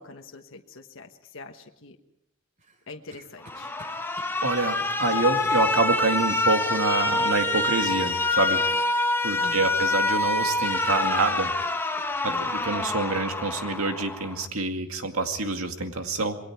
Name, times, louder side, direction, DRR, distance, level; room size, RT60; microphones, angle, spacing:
voice 1, 0.0-2.0 2.9-3.7 5.1-5.2 5.5-5.7 9.4-9.8 12.3-12.6, left 3 dB, 65° left, 3 dB, 1.4 m, -44 dB
sound 1, 2.6-4.4 5.4-5.7 7.3-7.5 9.5-9.8 10.1-10.8 11.1-11.2 11.6-13.3 13.7-13.9, right 1 dB, 35° right, 3.4 m, -50 dB
Alarm, 3.4-14.5, left 2 dB, 10° left, 1.0 m, -26 dB
voice 2, 4.4-8.6 9.2-11.8 12.2-16.4, right 3 dB, 85° right, 5 dB, 2.2 m, -27 dB
27.5 x 22.0 x 4.7 m, 0.81 s
head